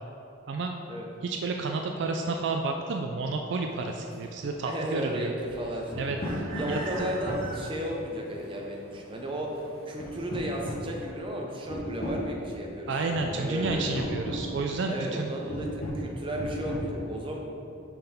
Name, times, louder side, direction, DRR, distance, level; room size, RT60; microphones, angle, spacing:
voice 1, 1.2-5.3 6.0-6.2 6.7-7.1 12.9-15.4, right 3 dB, 60° right, 3 dB, 0.3 m, -31 dB
sound 1, 3.7-11.1, right 2 dB, 90° right, 1.2 m, -45 dB
voice 2, 4.7-6.1 6.5-9.5 9.9-12.9 13.3-13.9 14.9-17.4, equal, 25° right, 0 dB, 0.7 m, -34 dB
sound 2, 5.5-5.6 5.9-7.8 9.1-9.5 10.0-11.3 11.7-12.3 13.1-13.3 13.6-14.4 15.0-15.2 15.5-16.1 16.4-16.8, equal, 45° left, 1.5 m, -34 dB
5.8 x 5.3 x 4.3 m, 2.8 s
head